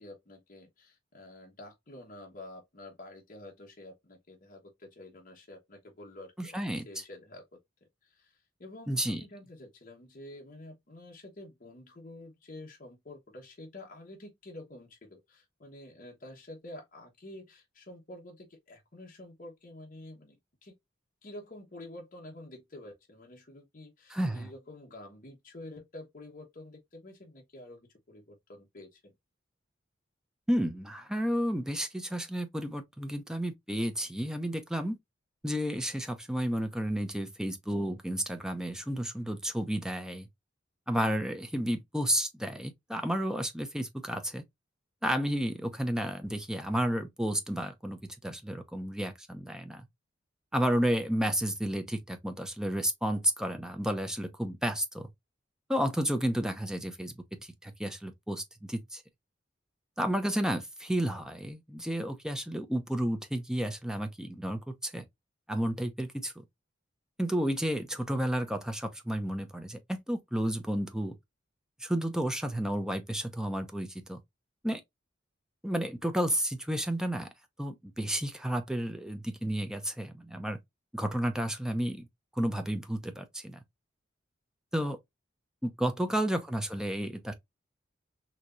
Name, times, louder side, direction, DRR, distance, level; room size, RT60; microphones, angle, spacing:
voice 1, 0.0-7.4 8.0-20.7 21.2-29.0 85.9-86.3, left 1 dB, 45° left, 1.2 m, -49 dB
voice 2, 6.4-6.8 8.9-9.2 24.1-24.5 30.5-35.0 35.4-40.3 40.9-44.4 45.0-49.9 50.5-55.1 55.7-57.1 57.4-59.0 60.0-65.0 65.5-66.3 67.2-71.2 71.8-74.2 74.6-74.8 75.6-77.3 77.6-80.6 80.9-82.1 82.3-83.6 84.7-85.0 85.6-87.3, equal, 5° right, 0.6 m, -31 dB
4.6 x 2.9 x 2.5 m
head